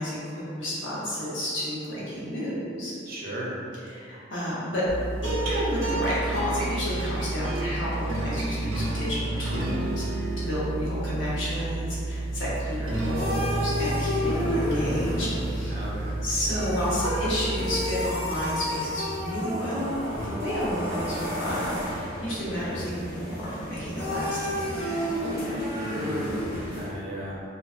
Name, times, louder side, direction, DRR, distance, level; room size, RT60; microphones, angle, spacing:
voice 1, 0.0-2.9 3.9-4.8 5.2-15.8 16.2-20.0 20.2-25.1, equal, 75° left, -8 dB, 0.8 m, -31 dB
voice 2, 3.1-3.6 15.7-16.3 25.7-27.4, right 1 dB, 50° right, -5 dB, 0.5 m, -35 dB
sound 1, 4.9-18.4, right 1 dB, 90° right, 0.6 m, -30 dB
sound 2, 12.8-26.9, equal, 15° right, 0.9 m, -31 dB
2.7 x 2.2 x 2.4 m, 2.5 s
head